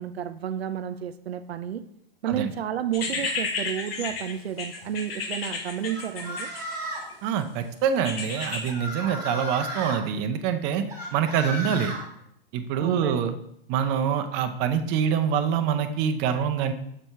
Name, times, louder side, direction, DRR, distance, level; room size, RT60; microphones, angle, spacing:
voice 1, 0.0-1.8 2.2-6.5 12.8-13.4, right 9 dB, 85° right, 11 dB, 0.5 m, -31 dB
sound 1, 2.9-7.1 8.0-8.7, left 4 dB, 70° left, 1.3 m, -32 dB
sound 2, 5.9-7.1 8.3-10.0 10.9-12.0, equal, 10° right, 2.1 m, -34 dB
voice 2, 7.2-10.8 11.1-11.9 12.5-13.3 13.7-16.7, right 8 dB, 35° right, 7 dB, 0.6 m, -25 dB
6.9 x 4.4 x 3.3 m, 0.72 s
hypercardioid pair, 115°, 31 cm